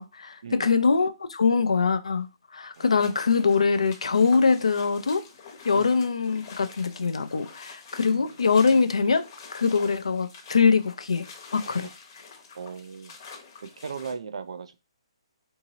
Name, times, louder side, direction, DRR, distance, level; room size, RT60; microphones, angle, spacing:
voice 1, 0.0-2.3 2.5-5.3 5.6-9.3 9.5-11.9, left 5 dB, 85° left, 0.4 m, -23 dB
sound 1, 2.7-14.1, left 5 dB, 40° left, 0.8 m, -47 dB
voice 2, 12.5-13.1 13.6-14.7, right 6 dB, 70° right, 0.4 m, -37 dB
2.8 x 2.7 x 2.8 m
hypercardioid pair, 150°, 3 cm